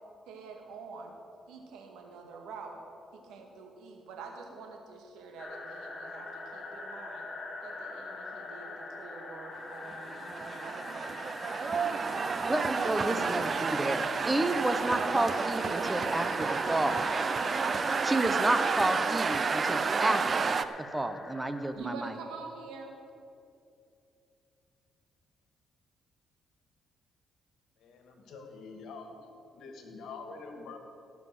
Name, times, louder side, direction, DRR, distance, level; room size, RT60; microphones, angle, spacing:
voice 1, 0.3-1.1 1.5-2.8 3.1-7.3 7.6-10.4 10.6-11.1 21.7-22.9, right 4 dB, 90° right, 2 dB, 2.0 m, -46 dB
sound 1, 5.4-21.7, left 3 dB, 35° left, 1.9 m, -44 dB
sound 2, 9.9-20.7, right 5 dB, 40° right, 0.6 m, -30 dB
voice 2, 12.5-17.0 18.0-20.5 20.9-22.1, right 1 dB, 15° right, 9 dB, 0.9 m, -30 dB
voice 3, 27.8-29.1 29.5-30.8, left 4 dB, 75° left, 4 dB, 2.1 m, -45 dB
16.5 x 6.1 x 7.7 m, 2.6 s
cardioid pair, 90°, 0 cm